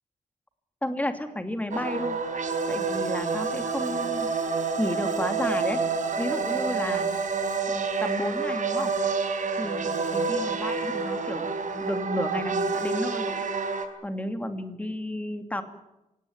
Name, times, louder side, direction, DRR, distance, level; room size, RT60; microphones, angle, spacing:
voice 1, 0.8-2.2 2.7-4.3 4.8-5.8 6.2-7.1 7.7-8.9 9.5-13.4 14.0-15.6, left 1 dB, 10° left, 8 dB, 2.7 m, -32 dB
sound 1, 1.7-13.8, right 4 dB, 65° right, 4.1 m, -28 dB
26.5 x 18.0 x 9.5 m, 0.92 s
wide cardioid pair, 140°, 14 cm